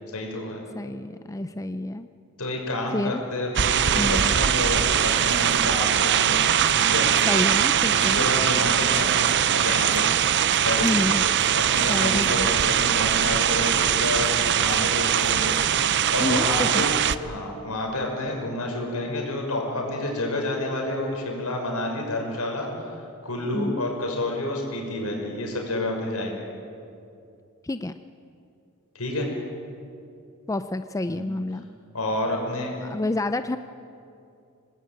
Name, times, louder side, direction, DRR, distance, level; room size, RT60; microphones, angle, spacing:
voice 1, 0.1-0.6 2.4-6.4 6.7-7.1 7.9-10.1 10.6-10.9 11.4-14.3 14.5-26.5 28.9-29.3 31.1-31.2 31.9-32.8, left 1 dB, 75° left, 1 dB, 6.2 m, -29 dB
voice 2, 0.7-2.1 2.9-3.2 3.9-4.3 7.2-8.3 10.8-11.2 11.9-12.6 16.2-16.9 23.5-23.8 27.6-27.9 30.5-31.7 32.8-33.6, left 1 dB, 15° left, 10 dB, 0.5 m, -28 dB
sound 1, 3.6-17.2, right 9 dB, 55° right, 0.7 m, -21 dB
26.0 x 20.0 x 9.0 m, 2.6 s
head